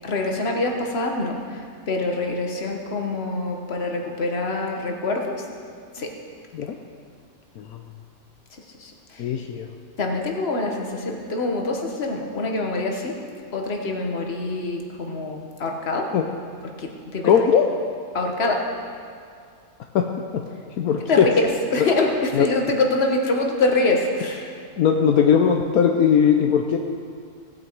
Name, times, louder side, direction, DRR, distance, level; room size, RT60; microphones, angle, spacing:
voice 1, 0.0-5.4 5.9-6.1 8.8-9.3 10.0-13.1 13.5-16.1 16.8-17.3 18.1-18.6 21.1-21.3 21.7-24.5, left 2 dB, 45° left, 1 dB, 1.6 m, -25 dB
voice 2, 9.2-9.7 16.1-16.3 17.2-17.7 19.9-20.1 20.3-20.4 20.8-21.3 22.3-22.5 24.8-26.8, left 7 dB, 75° left, 3 dB, 1.2 m, -19 dB
18.5 x 9.0 x 4.7 m, 2.3 s
omnidirectional pair, 1.6 m